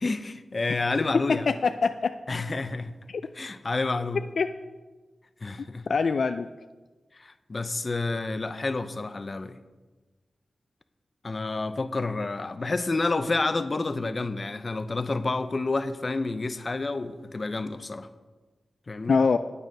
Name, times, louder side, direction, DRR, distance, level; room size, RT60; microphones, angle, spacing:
voice 1, 0.0-1.5 2.3-2.9 3.4-4.2 5.4-5.8 7.2-9.6 11.2-18.1 18.9-19.2, left 3 dB, 45° left, 0.7 m, -29 dB
voice 2, 1.3-2.1 4.4-4.5 5.9-6.5 19.1-19.4, left 5 dB, 75° left, 0.3 m, -23 dB
9.1 x 8.6 x 5.4 m
cardioid pair, 65°, 0 cm